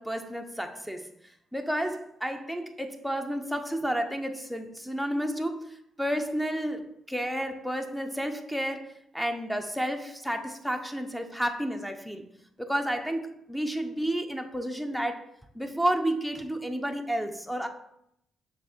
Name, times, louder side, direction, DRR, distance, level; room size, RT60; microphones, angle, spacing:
voice 1, 0.0-8.9 9.1-12.2 12.6-15.2 15.5-17.7, equal, ahead, 6 dB, 0.7 m, -31 dB
6.7 x 3.4 x 4.3 m, 0.76 s
cardioid pair, 90°, 0 cm